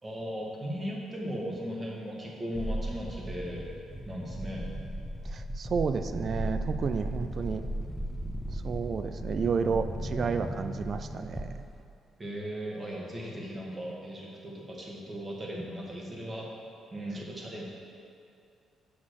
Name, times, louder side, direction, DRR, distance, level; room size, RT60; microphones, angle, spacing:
voice 1, 0.0-3.7 4.0-4.7 12.2-16.4 16.9-17.6, equal, 25° right, -3 dB, 1.8 m, -37 dB
sound 1, 2.5-11.9, equal, 5° left, 0.6 m, -36 dB
voice 2, 5.3-7.6 8.5-11.5, right 5 dB, 50° right, 9 dB, 0.4 m, -31 dB
6.3 x 5.9 x 6.3 m, 2.6 s
cardioid pair, 90°, 0 cm